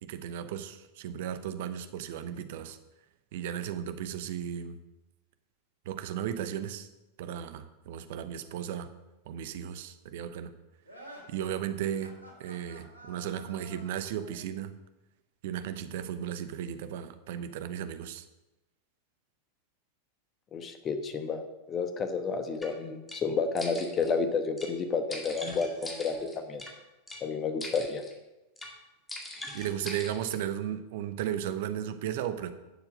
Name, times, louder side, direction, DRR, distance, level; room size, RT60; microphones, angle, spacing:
voice 1, 0.0-2.8 3.3-4.8 5.8-6.9 7.2-8.9 9.3-10.5 11.3-14.7 15.4-18.3 29.5-32.5, right 10 dB, 50° right, 11 dB, 0.8 m, -35 dB
sound 1, 10.8-14.4, right 1 dB, 85° left, 2.4 m, -50 dB
voice 2, 20.5-21.4 21.7-26.6 27.2-28.0, left 5 dB, 25° left, 8 dB, 1.1 m, -31 dB
sound 2, 22.6-22.7 23.1-23.2 23.6-24.1 24.6-24.7 25.1-26.7 27.1-27.2 27.6-28.1 28.6-28.7 29.1-30.4, left 1 dB, 10° left, 2.1 m, -42 dB
11.5 x 7.3 x 5.1 m, 1.0 s
figure-of-eight pair, 90°, 0 cm